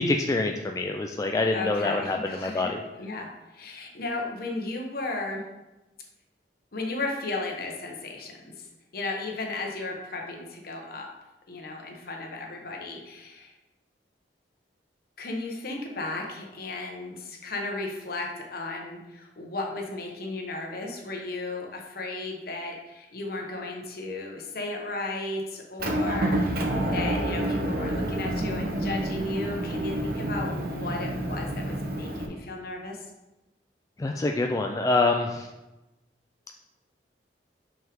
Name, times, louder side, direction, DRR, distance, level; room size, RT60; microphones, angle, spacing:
voice 1, 0.0-2.8 34.0-35.5, left 2 dB, 20° left, 2 dB, 0.3 m, -26 dB
voice 2, 1.5-2.7 3.0-5.4 6.7-8.5 8.9-11.1 11.5-13.5 15.2-33.1, left 2 dB, 60° left, 1 dB, 1.2 m, -35 dB
Motor vehicle (road) / Engine, 25.8-32.3, right 1 dB, 55° right, 0.9 m, -28 dB
5.7 x 5.5 x 3.6 m, 1.0 s
head